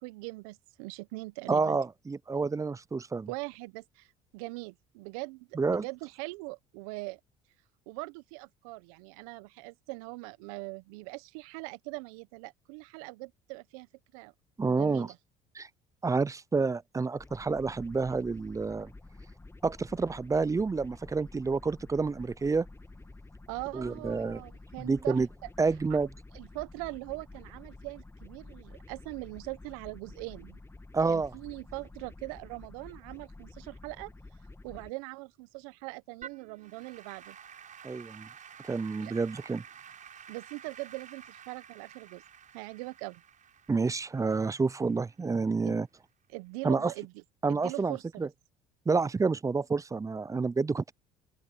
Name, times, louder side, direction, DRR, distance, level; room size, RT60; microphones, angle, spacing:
voice 1, 0.0-1.8 3.3-4.1 4.3-7.2 7.9-14.3 14.6-15.2 23.5-25.5 25.9-26.1 26.3-30.6 31.1-34.1 34.6-37.4 39.0-39.1 40.3-42.2 42.5-43.2 45.6-45.8 46.3-47.2 47.5-48.3, right 25 dB, 80° right, 1.1 m, -41 dB
voice 2, 1.5-3.3 5.6-5.8 14.6-15.1 15.6-15.7 16.0-18.9 19.6-22.7 23.7-24.4 24.8-25.3 25.6-26.1 30.9-31.3 37.8-38.3 38.6-39.6 43.7-45.9 46.6-46.9 47.4-48.3 48.9-50.9, right 4 dB, 20° right, 0.5 m, -29 dB
sound 1, 17.2-34.9, left 2 dB, 15° left, 1.9 m, -50 dB
Applause / Keyboard (musical), 36.2-45.5, right 8 dB, 45° right, 6.5 m, -51 dB
open air
hypercardioid pair, 65°, 18 cm